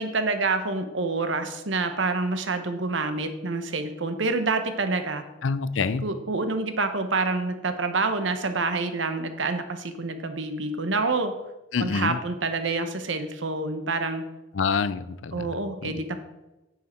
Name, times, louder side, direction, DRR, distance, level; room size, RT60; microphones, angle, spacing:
voice 1, 0.0-5.2 6.0-11.3 11.8-14.2 15.3-16.2, right 3 dB, 80° right, 8 dB, 1.0 m, -27 dB
voice 2, 5.4-6.1 11.7-12.2 14.5-15.5 15.8-16.0, left 5 dB, 85° left, 15 dB, 0.5 m, -26 dB
9.2 x 7.6 x 4.4 m, 1.0 s
head